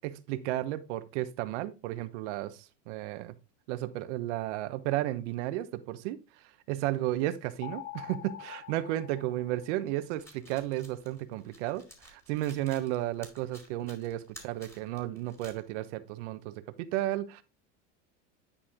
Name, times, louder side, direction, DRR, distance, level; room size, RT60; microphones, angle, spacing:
voice 1, 0.0-3.3 3.7-6.2 6.7-17.4, right 14 dB, 70° right, 1.0 m, -33 dB
sound 1, 7.6-10.1, left 11 dB, 30° left, 0.6 m, -45 dB
sound 2, 10.0-15.6, equal, 5° left, 2.2 m, -53 dB
10.0 x 4.3 x 3.5 m
supercardioid pair, 120°, 37 cm